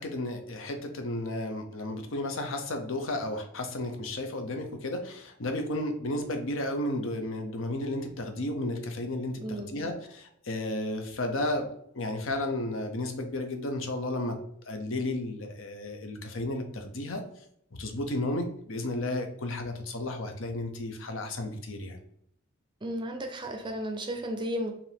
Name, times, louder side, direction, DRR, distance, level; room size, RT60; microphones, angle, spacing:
voice 1, 0.0-11.7 11.9-14.4 14.7-17.2 17.7-22.0, left 1 dB, 70° left, 5 dB, 0.7 m, -33 dB
voice 2, 9.4-9.9 22.8-24.7, equal, 25° right, 5 dB, 0.5 m, -34 dB
5.0 x 2.6 x 3.4 m, 0.72 s
head